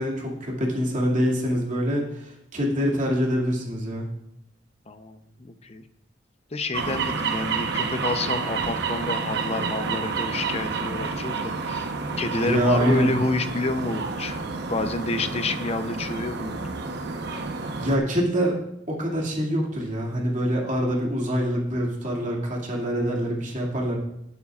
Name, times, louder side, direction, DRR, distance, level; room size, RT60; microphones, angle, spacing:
voice 1, 0.0-4.1 12.4-13.1 17.8-18.6 18.9-24.0, equal, 40° right, -3 dB, 2.3 m, -25 dB
voice 2, 4.9-5.8 6.5-11.9 12.2-14.4 14.7-16.6, left 2 dB, 35° left, 9 dB, 0.7 m, -29 dB
sound 1, 6.7-18.0, right 4 dB, 60° right, 1.0 m, -29 dB
19.0 x 8.3 x 2.5 m, 0.81 s
head